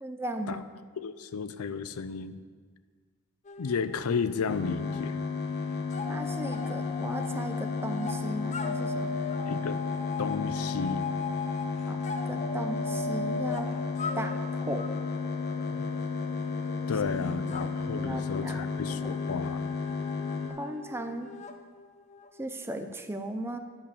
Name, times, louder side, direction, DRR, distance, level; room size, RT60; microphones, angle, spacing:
voice 1, 0.0-0.6 6.1-9.2 11.8-13.7 14.2-14.9 17.1-19.2 20.6-21.4 22.4-23.6, right 1 dB, 10° right, 7 dB, 0.5 m, -37 dB
voice 2, 1.0-2.4 3.6-5.2 9.5-9.8 10.2-11.1 15.7-15.9 16.9-19.6, left 5 dB, 85° left, 12 dB, 0.5 m, -33 dB
sound 1, 3.5-5.1 5.3-22.4, left 3 dB, 35° left, 0.6 m, -39 dB
sound 2, 4.5-20.5, left 5 dB, 50° left, 1.0 m, -33 dB
11.0 x 5.3 x 7.0 m, 1.5 s
head